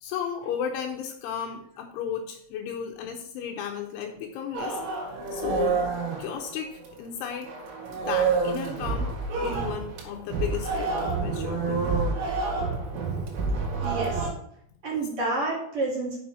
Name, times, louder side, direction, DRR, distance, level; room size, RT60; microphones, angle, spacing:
voice 1, 0.0-4.8 5.3-5.8 6.2-7.5 7.9-9.1 9.4-11.8 14.9-15.0, left 8 dB, 80° left, 1 dB, 3.3 m, -34 dB
sound 1, 4.5-7.1 7.4-14.3, right 4 dB, 85° right, 4.6 m, -28 dB
voice 2, 13.8-14.3 14.8-16.2, right 2 dB, 40° right, -3 dB, 2.2 m, -29 dB
7.2 x 7.1 x 6.2 m, 0.69 s
omnidirectional pair, 5.6 m